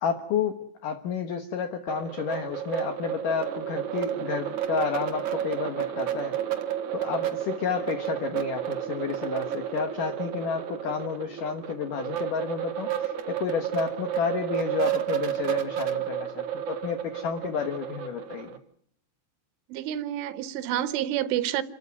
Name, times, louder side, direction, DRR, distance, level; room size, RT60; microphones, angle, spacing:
voice 1, 0.0-0.6 0.8-6.4 6.9-18.5, left 6 dB, 70° left, 2.1 m, -31 dB
sound 1, 1.9-18.6, right 10 dB, 60° right, 2.1 m, -31 dB
voice 2, 19.7-21.6, right 12 dB, 80° right, 3.6 m, -28 dB
29.0 x 13.5 x 9.5 m
omnidirectional pair, 5.6 m